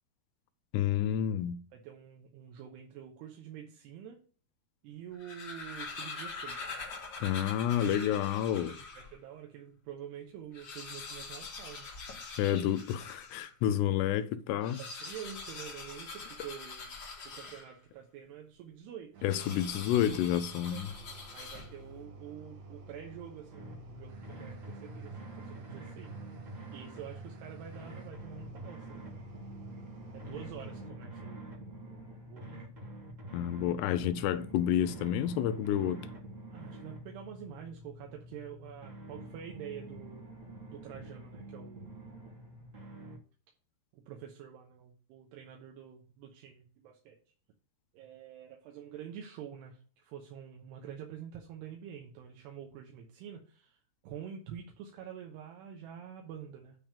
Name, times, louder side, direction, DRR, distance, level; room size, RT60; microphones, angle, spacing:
voice 1, 0.7-1.6 7.2-8.7 12.4-14.8 19.2-20.9 33.3-36.0, left 11 dB, 85° left, 2.7 m, -29 dB
voice 2, 1.7-4.2 4.8-6.8 8.7-11.9 12.4-12.7 14.8-16.9 17.2-19.2 20.7-20.8 21.3-26.1 26.7-29.1 30.1-31.5 31.8-32.5 36.5-40.3 40.7-42.1 43.9-47.2 47.9-56.8, right 9 dB, 80° right, 3.0 m, -47 dB
sound 1, 5.0-9.2 9.7-9.8 10.0-10.1 10.4-13.6 14.5-18.0 19.3-22.0, left 4 dB, 50° left, 1.4 m, -44 dB
sound 2, 19.1-30.9, right 4 dB, 60° right, 2.0 m, -50 dB
sound 3, 23.5-43.2, right 1 dB, 45° right, 0.9 m, -47 dB
9.2 x 3.5 x 6.9 m
omnidirectional pair, 4.9 m